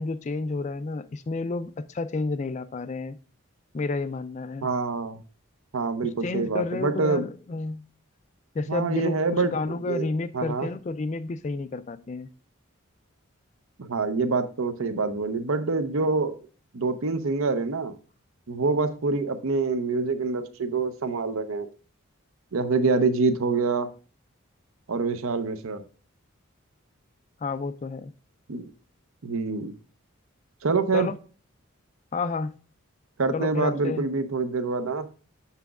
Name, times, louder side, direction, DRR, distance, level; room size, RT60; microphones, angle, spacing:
voice 1, 0.0-3.2 3.7-4.7 6.2-7.8 8.5-12.3 27.4-28.1 30.9-31.2 32.1-32.5 33.3-34.1, left 3 dB, 35° left, 0.3 m, -30 dB
voice 2, 4.6-5.2 5.7-7.2 8.7-10.1 10.3-10.7 13.8-16.4 16.7-18.0 18.5-21.7 22.5-23.9 24.9-25.8 28.5-28.7 29.2-29.7 30.6-31.1 33.2-35.1, right 4 dB, 80° right, 0.7 m, -26 dB
6.8 x 5.7 x 2.4 m
head